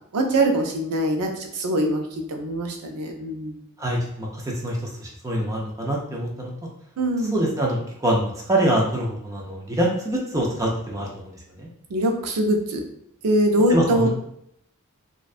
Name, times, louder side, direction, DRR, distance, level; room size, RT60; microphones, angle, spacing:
voice 1, 0.1-3.6 7.0-7.3 11.9-12.8 13.2-14.1, right 1 dB, 85° right, 3 dB, 0.5 m, -23 dB
voice 2, 3.8-6.5 7.3-11.3 11.6-11.7 13.7-14.1, right 1 dB, 15° right, -2 dB, 0.4 m, -25 dB
2.5 x 2.1 x 2.4 m, 0.73 s
head